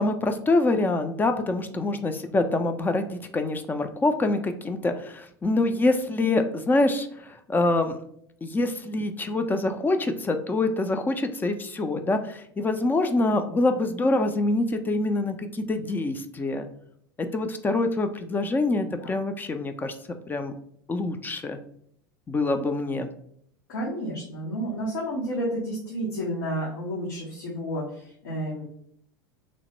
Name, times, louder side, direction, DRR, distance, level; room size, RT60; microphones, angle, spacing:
voice 1, 0.0-8.0 8.4-16.7 17.2-20.5 20.9-21.6 22.3-23.1, left 2 dB, 15° left, 8 dB, 0.3 m, -25 dB
voice 2, 23.7-28.6, equal, 80° left, -6 dB, 0.9 m, -31 dB
3.0 x 2.0 x 3.0 m, 0.67 s
hypercardioid pair, 95°, 12 cm